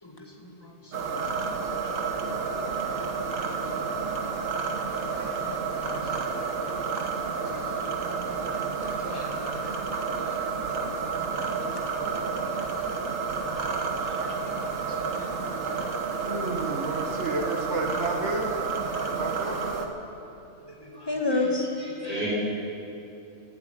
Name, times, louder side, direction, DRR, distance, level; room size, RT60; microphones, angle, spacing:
voice 1, 0.0-2.2 2.5-3.9 5.2-6.9 7.4-8.4 8.8-10.9 11.3-11.7 14.0-14.5 14.8-16.1 20.7-22.0, left 2 dB, 20° left, 0 dB, 1.9 m, -37 dB
sound 1, 0.9-19.9, right 5 dB, 90° right, 1.6 m, -30 dB
voice 2, 16.2-18.6 19.2-19.6, right 2 dB, 65° right, 2 dB, 1.6 m, -31 dB
voice 3, 20.9-21.4 21.8-22.3, right 1 dB, 35° left, -9 dB, 5.2 m, -36 dB
17.5 x 8.9 x 8.7 m, 2.8 s
omnidirectional pair, 1.3 m